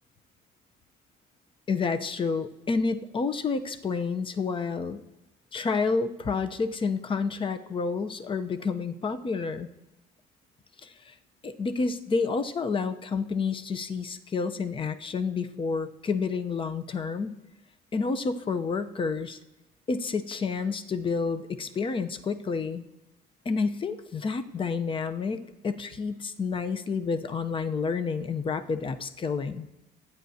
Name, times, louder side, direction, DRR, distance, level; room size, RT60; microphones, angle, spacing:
voice 1, 1.7-5.0 5.5-9.7 10.8-11.1 11.4-17.4 17.9-19.4 19.9-22.8 23.4-29.7, left 4 dB, 30° left, 10 dB, 0.7 m, -29 dB
22.5 x 9.5 x 2.8 m, 0.96 s
cardioid pair, 110°, 17 cm